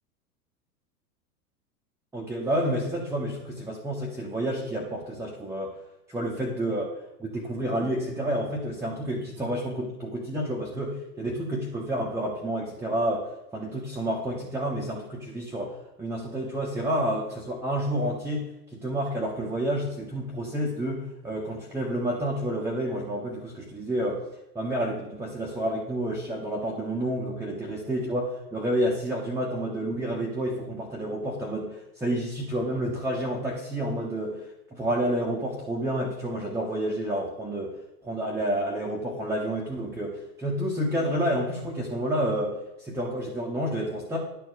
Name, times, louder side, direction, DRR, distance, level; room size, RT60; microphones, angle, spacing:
voice 1, 2.1-5.7 6.1-6.9 7.2-13.3 13.5-24.2 24.5-34.4 34.7-37.7 38.0-44.2, right 1 dB, 5° right, -4 dB, 1.2 m, -29 dB
10.5 x 4.5 x 6.7 m, 0.89 s
figure-of-eight pair, 95°, 49 cm